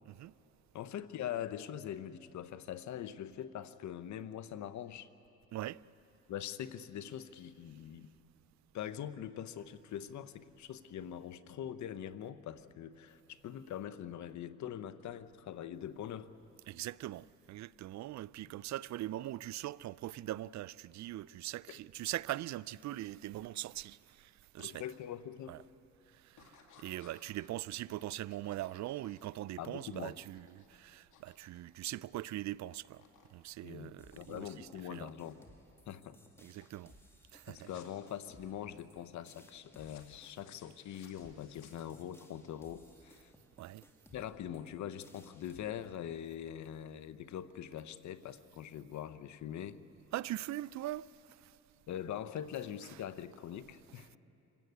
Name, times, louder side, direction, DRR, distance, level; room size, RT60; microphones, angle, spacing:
voice 1, 0.7-5.1 6.3-8.1 8.7-16.3 21.7-21.8 24.6-25.6 29.6-30.2 33.6-35.4 35.9-36.2 37.5-43.3 44.1-49.8 51.9-54.2, left 10 dB, 70° left, 0.9 m, -43 dB
voice 2, 5.5-5.8 16.7-24.8 25.5-25.6 26.2-33.0 33.3-35.1 36.4-36.9 37.3-37.7 43.6-43.8 50.1-51.1 51.4-51.5, right 15 dB, 65° right, 0.5 m, -41 dB
sound 1, 24.6-24.8 25.2-25.6 26.3-32.4 32.6-33.3 33.6-35.6 36.1-36.4 36.6-36.8 37.5-38.1 39.7-42.2, left 6 dB, 85° left, 2.7 m, -63 dB
sound 2, 34.0-45.6, left 1 dB, 10° left, 2.6 m, -62 dB
25.5 x 16.5 x 9.5 m
cardioid pair, 90°, 30 cm